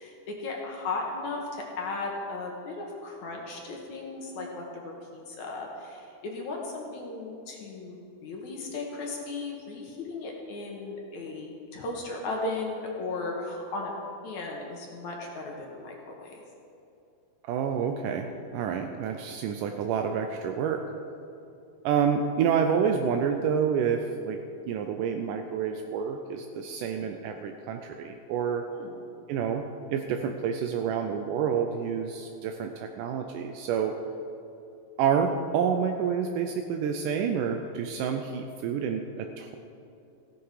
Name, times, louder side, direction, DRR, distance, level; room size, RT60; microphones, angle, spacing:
voice 1, 0.0-13.9 14.2-16.4 27.0-27.1 28.7-28.9, left 3 dB, 60° left, 0 dB, 2.5 m, -36 dB
voice 2, 17.4-20.8 21.8-24.4 24.7-28.6 29.3-34.0 35.0-39.6, right 7 dB, 85° right, 5 dB, 1.9 m, -28 dB
15.5 x 11.0 x 4.9 m, 2.8 s
omnidirectional pair, 4.5 m